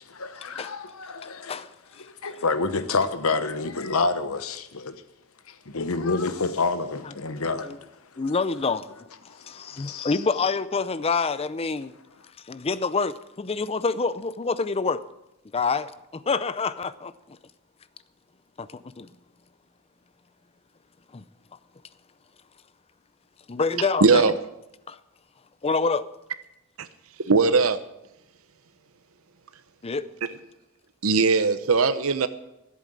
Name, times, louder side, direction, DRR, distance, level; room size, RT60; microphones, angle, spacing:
voice 1, 0.1-1.6 2.0-5.0 5.5-8.2 9.3-10.2, left 3 dB, 75° left, 1.0 m, -28 dB
voice 2, 8.2-8.9 9.2-11.9 12.5-15.0 15.5-17.4 18.6-19.1 21.1-21.2 23.5-24.3 24.9-25.0 25.6-26.1 29.8-30.1, left 4 dB, 25° left, 0.5 m, -27 dB
voice 3, 24.0-24.3 26.8-26.9 27.2-27.8 31.0-32.3, right 4 dB, 70° right, 0.9 m, -19 dB
14.5 x 8.4 x 7.6 m
head